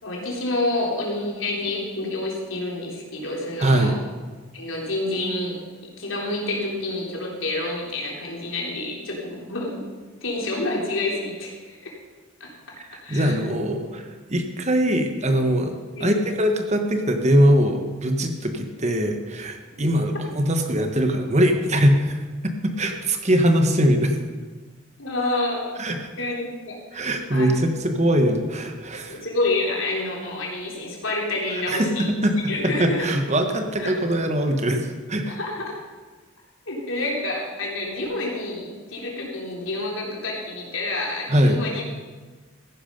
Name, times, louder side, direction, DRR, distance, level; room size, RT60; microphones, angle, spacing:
voice 1, 0.0-3.9 4.5-9.8 10.2-11.9 12.4-12.8 13.0-14.0 16.0-16.2 25.0-25.8 26.2-27.8 29.1-32.1 32.5-33.1 33.8-33.9 35.3-35.8 36.7-41.8, left 2 dB, 80° left, -1 dB, 3.5 m, -28 dB
voice 2, 3.6-4.0 12.8-14.0 14.3-15.7 16.0-24.2 25.8-26.1 26.9-29.2 31.7-32.3 32.6-35.4 41.3-41.6, equal, 35° right, 5 dB, 1.3 m, -22 dB
15.0 x 11.0 x 5.3 m, 1.4 s
head